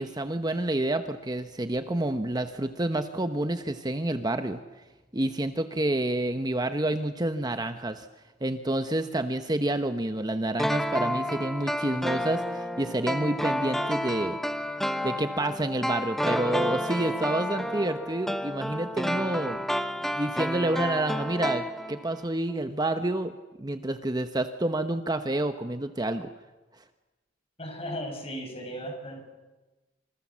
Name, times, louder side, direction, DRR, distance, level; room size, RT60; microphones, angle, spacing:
voice 1, 0.0-4.6 5.1-8.1 8.4-14.4 15.0-19.6 20.1-26.3, right 1 dB, 20° right, 8 dB, 1.0 m, -29 dB
sound 1, 10.6-22.2 22.5-22.6, equal, ahead, 1.1 m, -30 dB
voice 2, 27.6-29.3, equal, 30° left, 3 dB, 7.1 m, -36 dB
27.0 x 26.5 x 7.4 m, 1.2 s
head